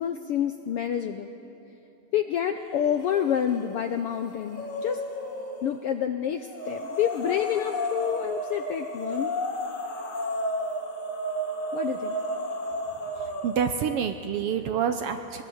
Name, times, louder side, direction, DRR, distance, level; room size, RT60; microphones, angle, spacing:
voice 1, 0.0-1.3 2.1-5.0 5.6-9.3 11.7-12.2, left 9 dB, 80° left, 7 dB, 1.3 m, -28 dB
sound 1, 3.0-3.6 3.9-5.8 6.5-13.7, equal, 55° left, 3.6 m, -32 dB
voice 2, 13.4-15.4, right 7 dB, 75° right, 8 dB, 1.4 m, -27 dB
22.0 x 22.0 x 8.0 m, 2.8 s
omnidirectional pair, 3.4 m